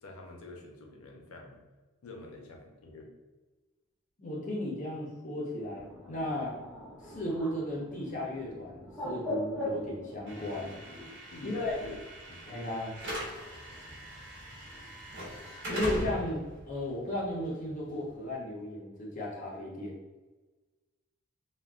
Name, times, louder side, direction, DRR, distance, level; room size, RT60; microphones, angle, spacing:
voice 1, 0.0-1.6 2.0-3.1 11.3-12.0 12.3-12.5, left 2 dB, 85° left, 1 dB, 0.6 m, -47 dB
voice 2, 4.2-6.5 7.0-10.7 11.4-11.7 12.5-12.9 15.7-20.0, left 1 dB, 35° left, -3 dB, 0.5 m, -35 dB
Bird, 5.6-11.1, left 1 dB, ahead, 0.8 m, -40 dB
Slam / Alarm, 10.3-18.3, equal, 55° right, 0.9 m, -41 dB
3.4 x 2.2 x 2.3 m, 1.2 s
head